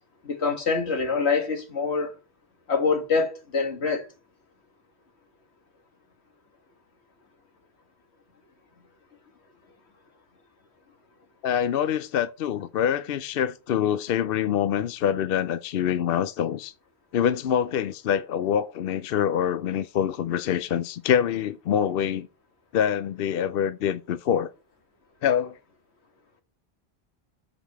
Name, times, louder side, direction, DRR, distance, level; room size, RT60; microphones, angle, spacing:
voice 1, 0.2-2.1 2.7-4.1, left 4 dB, 85° left, 2.0 m, -25 dB
voice 2, 11.4-16.7 17.1-22.3 22.7-24.5 25.2-25.6, left 9 dB, 65° left, 0.7 m, -25 dB
7.6 x 5.0 x 6.0 m
omnidirectional pair, 1.1 m